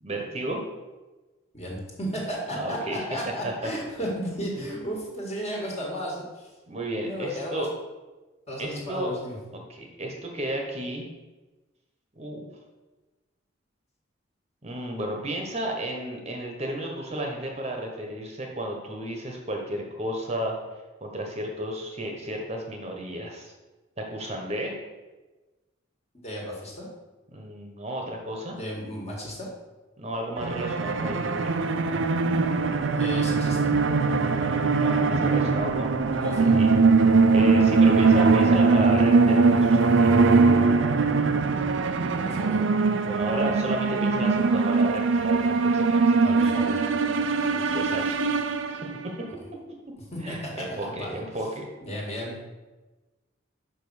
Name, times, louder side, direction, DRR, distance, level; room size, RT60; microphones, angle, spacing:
voice 1, 0.0-0.6 2.5-3.0 3.6-3.7 6.7-7.7 8.6-9.1 9.7-11.1 12.2-12.5 14.6-20.6 21.0-23.5 24.0-24.7 27.3-28.6 30.0-31.5 34.2-36.2 36.5-36.7 37.3-40.2 43.0-46.6 47.5-48.2 48.7-48.8 49.0-49.3 50.2-51.6, right 1 dB, 30° right, 1 dB, 1.0 m, -33 dB
voice 2, 1.5-6.5 7.0-7.7 8.5-9.4 26.1-26.9 28.5-29.5 33.0-33.7 36.2-36.6 42.1-42.7 46.2-46.8 50.1-51.2 51.8-52.5, equal, 30° left, -3 dB, 1.8 m, -34 dB
sound 1, 30.4-49.1, right 4 dB, 70° right, 0.5 m, -21 dB
5.5 x 5.4 x 6.3 m, 1.2 s
head